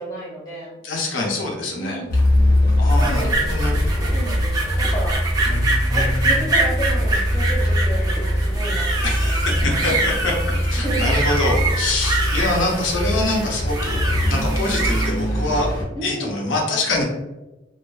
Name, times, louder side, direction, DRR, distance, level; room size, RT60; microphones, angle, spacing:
voice 1, 0.0-0.7 1.7-2.2 3.0-3.7 4.1-5.2 5.9-10.1 10.5-11.1 15.9-16.4, right 1 dB, 20° left, -6 dB, 1.2 m, -32 dB
voice 2, 0.8-2.0 2.8-4.1 5.4-6.5 9.0-10.3 10.6-15.7 16.0-17.0, left 2 dB, 90° left, -1 dB, 0.6 m, -25 dB
Car, 2.1-15.8, equal, 50° left, 0.9 m, -22 dB
sound 1, 2.9-15.1, right 2 dB, 20° right, 0.4 m, -26 dB
2.4 x 2.4 x 2.2 m, 1.0 s
head